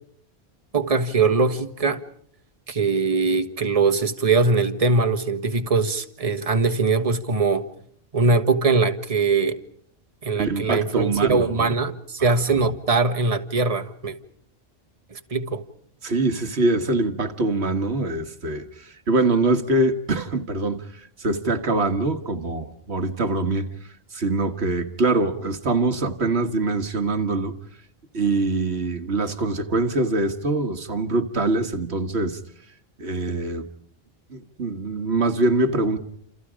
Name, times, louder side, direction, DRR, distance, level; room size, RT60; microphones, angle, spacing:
voice 1, 0.7-2.0 2.7-7.6 8.1-9.6 10.2-14.1 15.1-15.6, right 4 dB, 35° right, 1.6 m, -21 dB
voice 2, 10.3-11.7 12.2-12.7 16.0-23.7 24.1-27.5 28.1-32.4 33.0-33.7 34.3-36.0, right 2 dB, 85° right, 1.8 m, -24 dB
28.5 x 28.5 x 5.0 m
omnidirectional pair, 1.1 m